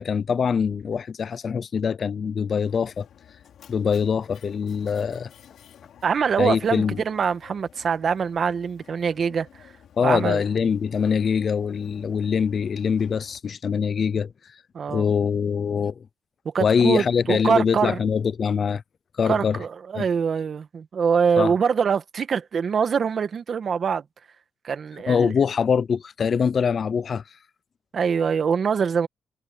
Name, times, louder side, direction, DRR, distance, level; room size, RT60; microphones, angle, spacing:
voice 1, 0.0-3.1 3.7-5.3 6.4-7.0 10.0-14.6 14.9-16.1 16.6-18.8 19.2-19.6 19.9-20.0 21.4-21.5 25.1-27.2, left 6 dB, 50° left, 0.5 m, -23 dB
Mechanisms, 2.6-13.4, left 9 dB, 70° left, 4.7 m, -51 dB
voice 2, 6.0-9.7 10.0-10.4 14.7-15.1 16.4-18.0 19.2-24.0 24.6-25.3 27.9-29.1, right 6 dB, 50° right, 1.8 m, -24 dB
cardioid pair, 100°, 0 cm